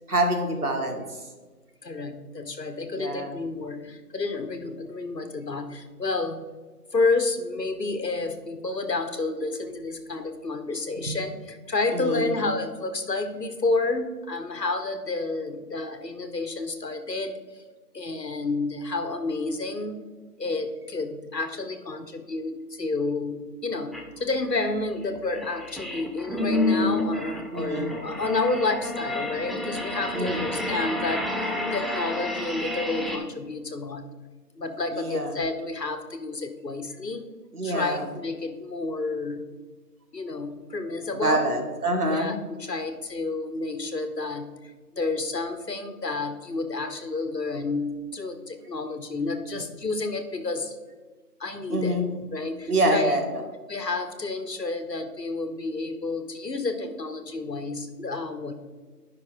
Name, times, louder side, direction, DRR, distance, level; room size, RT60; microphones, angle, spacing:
voice 1, 0.1-1.0 2.9-3.4 11.0-11.2 11.9-12.3 27.5-27.9 30.1-30.4 34.9-35.3 37.5-38.0 41.2-42.4 51.7-52.1 52.7-53.4, right 1 dB, 65° right, 2 dB, 2.0 m, -26 dB
voice 2, 1.8-6.4 6.9-17.4 17.9-20.1 20.4-34.0 34.6-37.3 37.6-39.4 40.1-41.5 42.1-44.5 44.9-50.8 51.4-52.0 52.3-53.2 53.7-58.5, left 3 dB, 85° left, 8 dB, 1.4 m, -30 dB
sound 1, 23.9-24.0 24.5-33.2, left 2 dB, ahead, 0.5 m, -29 dB
10.0 x 5.9 x 4.4 m, 1.3 s
figure-of-eight pair, 175°, 48 cm